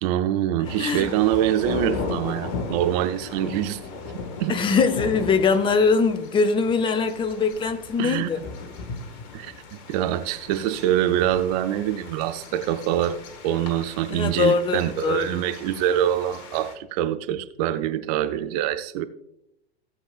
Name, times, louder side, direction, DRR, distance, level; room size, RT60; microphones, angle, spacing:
voice 1, 0.0-3.8 4.4-4.6 8.0-8.5 9.3-19.0, right 11 dB, 35° right, 0.7 m, -25 dB
sound 1, 0.6-16.7, left 4 dB, 40° left, 1.6 m, -36 dB
voice 2, 0.6-1.1 4.5-8.4 14.1-15.4, left 5 dB, 15° left, 0.7 m, -22 dB
16.5 x 7.2 x 2.4 m
figure-of-eight pair, 100°, 33 cm